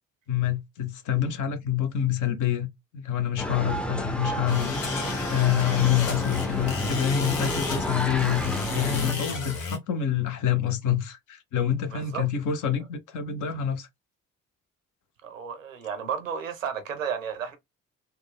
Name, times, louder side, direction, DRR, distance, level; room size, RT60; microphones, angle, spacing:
voice 1, 0.3-2.7 2.9-4.8 5.3-13.9, left 10 dB, 50° left, 0.7 m, -27 dB
sound 1, 3.4-9.1, left 1 dB, 5° left, 0.5 m, -31 dB
sound 2, 4.5-9.8, left 2 dB, 80° left, 0.8 m, -33 dB
voice 2, 11.9-12.2 15.2-17.6, right 7 dB, 85° right, 0.5 m, -33 dB
3.3 x 2.2 x 3.5 m
figure-of-eight pair, 40°, 38 cm